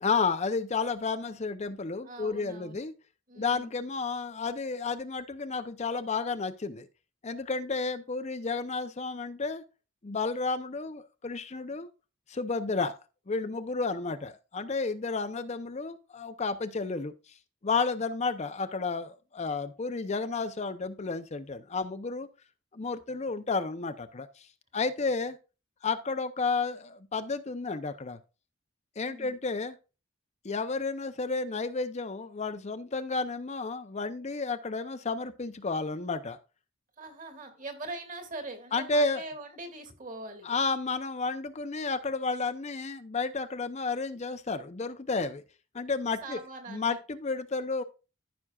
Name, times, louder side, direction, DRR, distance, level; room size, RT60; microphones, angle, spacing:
voice 1, 0.0-2.9 3.4-6.9 7.2-9.6 10.0-11.9 12.3-13.0 13.3-17.4 17.6-22.3 22.7-24.5 24.7-25.4 25.8-28.2 29.0-29.8 30.4-36.4 38.7-39.2 40.4-45.4 45.7-46.4 46.7-47.8, left 4 dB, 35° left, 0.6 m, -32 dB
voice 2, 2.0-2.8 3.3-3.7 29.0-29.4 37.0-40.5 46.2-47.0, right 2 dB, 40° right, 2.3 m, -42 dB
14.5 x 6.0 x 2.4 m
head